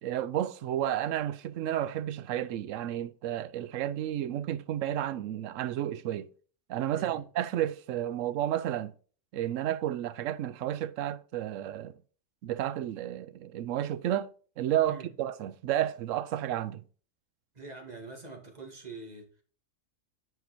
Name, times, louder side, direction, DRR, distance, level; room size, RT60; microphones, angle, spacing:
voice 1, 0.0-6.3 6.7-8.9 9.3-11.9 12.4-14.3 14.6-16.8, right 12 dB, 80° right, 1.0 m, -31 dB
voice 2, 17.5-19.4, right 3 dB, 35° right, 2.2 m, -45 dB
7.9 x 5.8 x 4.3 m
omnidirectional pair, 1.3 m